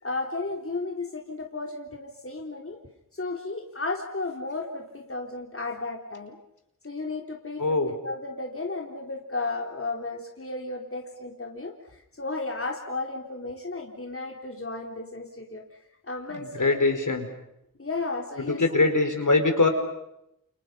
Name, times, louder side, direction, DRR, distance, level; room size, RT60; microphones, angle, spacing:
voice 1, 0.0-2.8 3.1-6.4 6.8-11.8 12.2-15.6 16.1-17.0 17.8-18.9, left 3 dB, 40° left, 0 dB, 3.8 m, -34 dB
voice 2, 7.6-7.9 16.3-17.3 18.4-19.7, left 3 dB, 60° left, 5 dB, 4.9 m, -23 dB
29.5 x 29.5 x 5.7 m, 0.82 s
wide cardioid pair, 65°, 34 cm